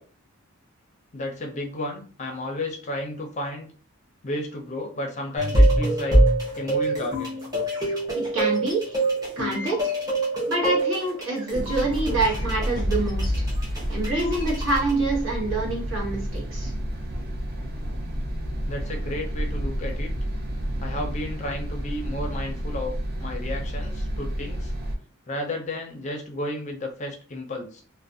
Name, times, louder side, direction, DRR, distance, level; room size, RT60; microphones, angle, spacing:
voice 1, 1.1-3.7 4.2-6.2 6.5-7.3 18.7-20.1 20.8-22.9 23.2-24.7 25.3-27.8, left 1 dB, 35° left, 2 dB, 0.4 m, -32 dB
sound 1, 5.4-14.9, right 1 dB, 15° right, 0.8 m, -24 dB
voice 2, 8.2-9.0 9.4-9.9 10.5-13.4 13.9-16.7, right 2 dB, 60° right, -2 dB, 1.0 m, -26 dB
sound 2, 11.5-25.0, equal, 45° right, 0.4 m, -30 dB
2.4 x 2.0 x 2.6 m, 0.40 s
head